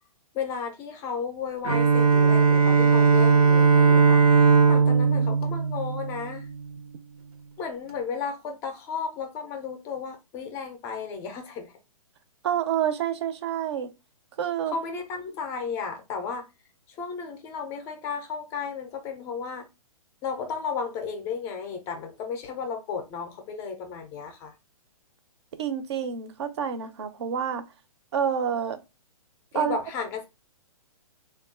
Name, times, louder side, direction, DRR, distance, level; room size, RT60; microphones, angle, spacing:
voice 1, 0.3-4.2 4.7-6.5 7.6-11.7 14.7-16.4 17.0-19.7 20.2-24.5 29.5-30.2, left 6 dB, 15° left, 0.4 m, -34 dB
Bowed string instrument, 1.6-6.5, right 5 dB, 85° right, 0.8 m, -19 dB
voice 2, 12.4-13.9 14.4-14.7 25.6-27.7 28.1-28.8 29.5-29.8, right 8 dB, 50° right, 0.6 m, -28 dB
3.5 x 2.3 x 3.5 m
hypercardioid pair, 160°, 19 cm